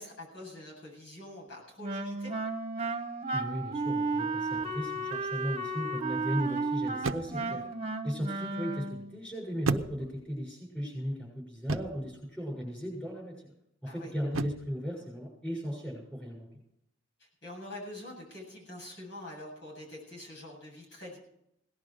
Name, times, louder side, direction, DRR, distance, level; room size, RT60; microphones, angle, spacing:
voice 1, 0.0-2.3 7.3-7.6 13.9-14.1 17.2-21.2, left 1 dB, 60° left, -2 dB, 7.9 m, -45 dB
Wind instrument woodwind instrument, 1.8-9.1, right 3 dB, 30° right, 1.3 m, -33 dB
voice 2, 3.3-7.7 8.0-13.5 13.8-16.5, equal, 5° left, -2 dB, 6.9 m, -36 dB
sound 1, 4.6-4.9 7.0-7.6 9.7-10.4 11.7-12.1 14.3-14.8, right 3 dB, 85° right, 0.8 m, -33 dB
18.0 x 11.5 x 5.0 m, 0.75 s
head